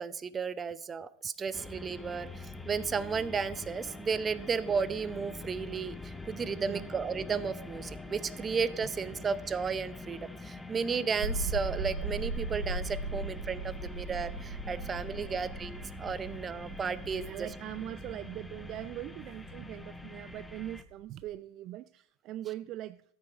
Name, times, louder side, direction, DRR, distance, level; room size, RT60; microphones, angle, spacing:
voice 1, 0.0-17.5, right 5 dB, 20° right, 16 dB, 0.7 m, -34 dB
sound 1, 1.5-20.8, left 2 dB, 5° left, 0.9 m, -45 dB
voice 2, 6.6-6.9 9.1-9.3 13.1-13.2 17.2-23.0, right 14 dB, 45° right, 15 dB, 0.4 m, -41 dB
sound 2, 11.2-21.3, right 2 dB, 80° right, 1.8 m, -39 dB
13.5 x 8.9 x 4.7 m, 0.66 s
hypercardioid pair, 95°, 0 cm